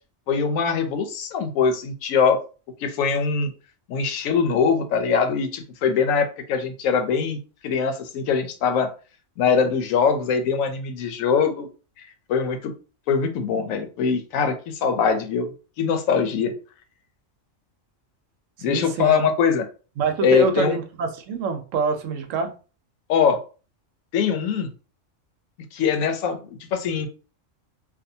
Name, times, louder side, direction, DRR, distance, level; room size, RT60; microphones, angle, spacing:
voice 1, 0.3-2.4 2.8-3.5 3.9-7.4 7.6-8.9 9.4-11.7 12.0-12.7 13.1-15.5 15.8-16.5 18.6-19.6 20.2-20.8 23.1-23.4 24.1-24.7 25.7-27.1, left 6 dB, 90° left, 7 dB, 1.0 m, -22 dB
voice 2, 18.7-19.2 20.0-22.5, right 5 dB, 75° right, 6 dB, 0.9 m, -26 dB
2.6 x 2.3 x 2.6 m, 0.35 s
omnidirectional pair, 1.3 m